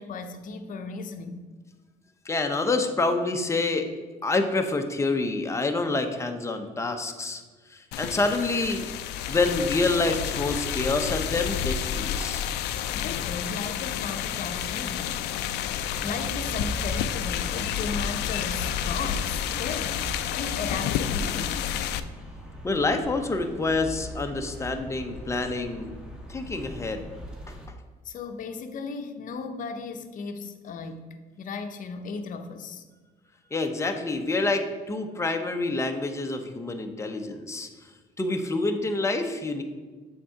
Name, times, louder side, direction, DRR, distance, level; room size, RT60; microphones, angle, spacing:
voice 1, 0.0-1.4 12.9-15.1 15.6-21.7 28.0-32.8, left 4 dB, 50° left, 6 dB, 0.8 m, -36 dB
voice 2, 2.2-3.9 4.2-7.4 7.7-8.8 9.3-12.5 22.6-25.9 26.3-27.1 27.5-27.6 33.5-37.7 38.2-39.6, left 3 dB, 15° left, 5 dB, 0.8 m, -27 dB
sound 1, 7.9-22.0, left 10 dB, 80° left, 0.4 m, -30 dB
sound 2, 15.9-27.7, equal, 5° right, 1.2 m, -40 dB
7.4 x 3.7 x 5.6 m, 1.3 s
cardioid pair, 110°, 17 cm